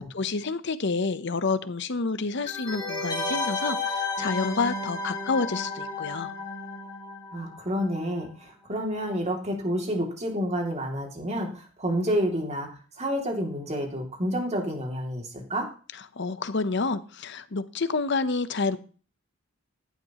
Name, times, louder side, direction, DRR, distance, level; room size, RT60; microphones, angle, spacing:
voice 1, 0.0-6.3 16.2-18.8, left 4 dB, 60° left, 13 dB, 0.9 m, -29 dB
sound 1, 2.5-7.9 8.2-8.3, left 3 dB, 20° left, 4.1 m, -32 dB
voice 2, 7.3-12.7 13.0-15.7, equal, 35° right, 2 dB, 2.7 m, -29 dB
15.0 x 11.0 x 3.1 m, 0.38 s
head